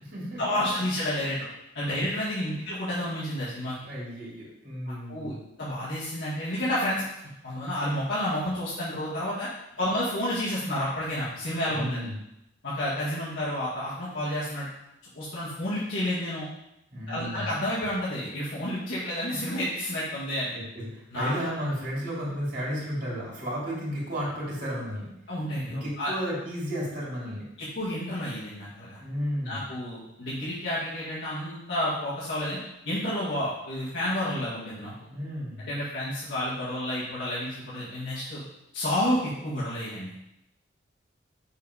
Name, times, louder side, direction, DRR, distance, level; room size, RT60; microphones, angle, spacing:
voice 1, 0.4-1.5 1.7-3.8 5.1-5.3 5.6-7.0 7.4-9.5 9.8-12.0 12.6-14.7 15.2-16.5 17.1-20.5 21.1-21.3 25.3-26.1 27.8-29.0 29.5-32.6 32.9-34.9 35.6-38.4 38.7-40.3, left 1 dB, 65° left, -10 dB, 1.9 m, -30 dB
voice 2, 3.9-5.4 11.7-12.1 16.9-17.5 20.4-25.1 25.7-27.5 29.0-29.6 35.1-35.7, equal, 45° right, -6 dB, 2.7 m, -33 dB
6.3 x 4.2 x 4.9 m, 0.83 s
head